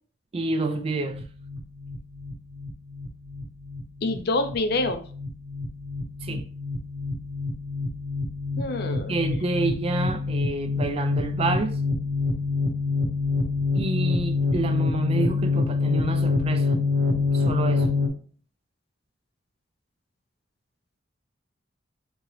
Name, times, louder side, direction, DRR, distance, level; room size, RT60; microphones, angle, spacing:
voice 1, 0.3-1.2 6.2-6.4 9.1-11.7 13.7-16.7 17.3-17.9, right 3 dB, 30° right, 0.3 m, -28 dB
sound 1, 1.1-18.1, left 3 dB, 65° right, 0.6 m, -26 dB
voice 2, 4.0-5.0 8.6-9.1, left 2 dB, 55° left, 0.5 m, -26 dB
3.7 x 2.9 x 3.0 m
head